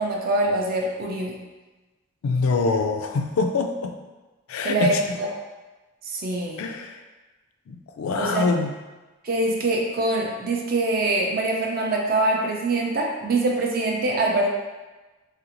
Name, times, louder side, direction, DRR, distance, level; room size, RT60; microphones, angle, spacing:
voice 1, 0.0-1.4 4.6-5.3 6.0-6.6 8.2-8.5 9.2-14.5, right 2 dB, 45° right, 0 dB, 0.4 m, -24 dB
voice 2, 2.2-4.0 4.5-5.0 6.6-7.0 7.7-8.8, left 4 dB, 80° left, 5 dB, 0.3 m, -24 dB
3.3 x 2.5 x 2.9 m, 1.2 s
head